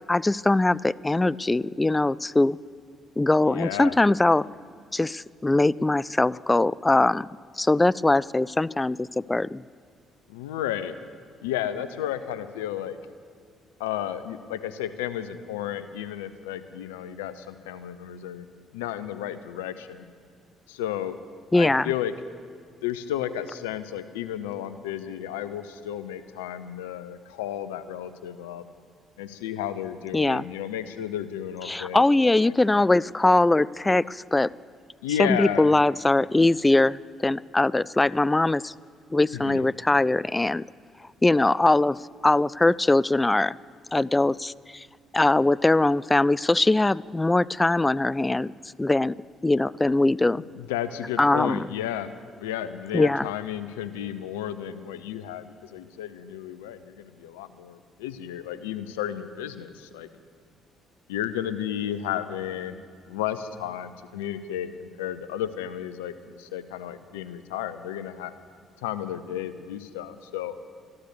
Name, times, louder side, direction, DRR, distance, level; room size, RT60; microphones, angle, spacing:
voice 1, 0.1-2.6 3.2-4.5 4.9-7.3 7.6-9.6 21.5-21.9 30.1-30.4 31.7-34.5 35.2-38.7 39.1-40.6 41.2-42.0 42.2-43.6 43.9-44.9 45.1-48.5 48.8-49.1 49.4-50.4 51.2-51.7 52.9-53.3, left 2 dB, 20° left, 22 dB, 0.3 m, -21 dB
voice 2, 3.5-3.9 10.3-11.0 11.4-13.0 13.8-18.5 18.7-20.1 20.7-21.2 21.5-22.1 22.8-28.6 29.2-32.0 32.5-32.9 35.0-35.7 39.3-39.6 50.6-52.1 52.4-60.1 61.1-62.8 63.1-68.3 68.8-70.6, left 11 dB, 90° left, 12 dB, 0.6 m, -33 dB
13.5 x 12.5 x 6.7 m, 2.2 s
hypercardioid pair, 55°, 0 cm